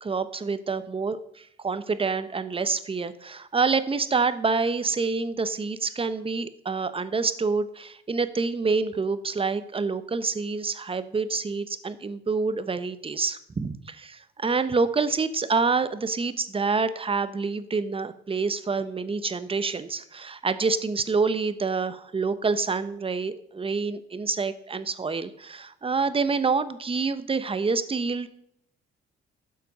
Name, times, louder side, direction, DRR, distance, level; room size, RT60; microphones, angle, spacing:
voice 1, 0.0-28.3, right 4 dB, 25° right, 13 dB, 1.0 m, -27 dB
12.0 x 7.7 x 5.4 m, 0.72 s
cardioid pair, 90°, 20 cm